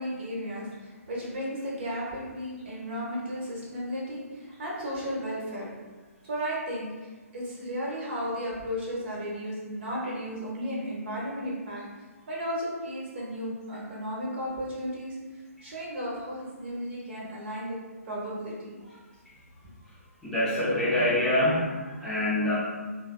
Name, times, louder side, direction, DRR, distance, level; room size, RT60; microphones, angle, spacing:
voice 1, 0.0-5.7 6.3-11.8 12.3-15.2 15.6-17.8 18.0-18.8, equal, 45° right, -5 dB, 1.0 m, -34 dB
voice 2, 20.2-22.6, left 1 dB, 5° left, -11 dB, 0.6 m, -25 dB
3.2 x 2.4 x 2.3 m, 1.3 s
figure-of-eight pair, 130°, 8 cm